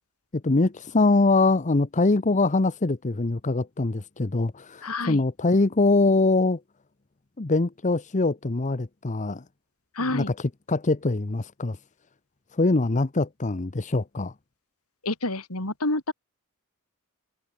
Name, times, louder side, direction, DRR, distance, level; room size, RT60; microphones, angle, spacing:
voice 1, 0.3-6.6 7.4-9.4 10.0-11.8 12.5-14.3, left 3 dB, 35° left, 0.8 m, -23 dB
voice 2, 4.8-5.2 9.9-10.3 15.0-16.1, left 2 dB, 75° left, 4.7 m, -28 dB
head